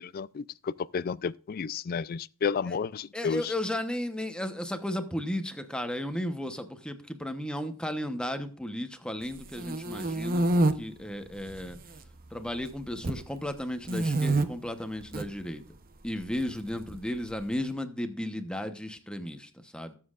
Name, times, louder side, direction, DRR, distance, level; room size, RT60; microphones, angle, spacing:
voice 1, 0.9-3.4, left 6 dB, 45° left, 0.4 m, -31 dB
voice 2, 3.1-11.8 12.3-15.6 16.0-20.0, left 1 dB, 5° left, 1.0 m, -34 dB
sound 1, 9.3-10.7 11.4-12.0 12.3-13.2 13.8-14.5 15.0-15.3 16.4-17.3, right 2 dB, 45° right, 0.8 m, -27 dB
19.5 x 7.5 x 2.5 m
head